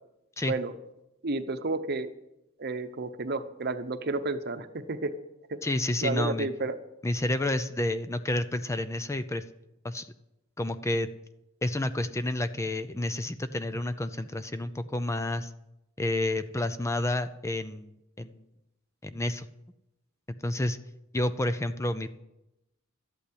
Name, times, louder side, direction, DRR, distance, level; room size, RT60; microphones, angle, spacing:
voice 1, 1.2-2.1 2.6-5.1 5.5-5.6 6.0-6.7, right 3 dB, 50° right, 10 dB, 0.9 m, -31 dB
voice 2, 5.6-6.5 7.0-9.4 9.8-10.1 10.6-11.1 11.6-15.5 16.0-18.4 19.0-19.5 20.4-20.8 21.1-22.1, left 1 dB, 15° left, 11 dB, 0.5 m, -30 dB
13.0 x 8.4 x 8.6 m, 0.90 s
head